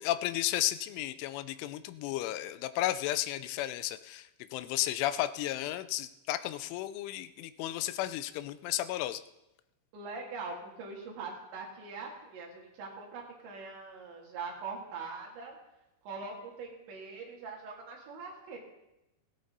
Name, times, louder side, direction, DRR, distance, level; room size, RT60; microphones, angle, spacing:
voice 1, 0.0-9.2, left 14 dB, 85° left, 13 dB, 3.0 m, -33 dB
voice 2, 9.9-15.6 16.0-18.6, right 4 dB, 70° right, -2 dB, 4.9 m, -42 dB
17.0 x 13.5 x 4.0 m, 0.92 s
omnidirectional pair, 5.6 m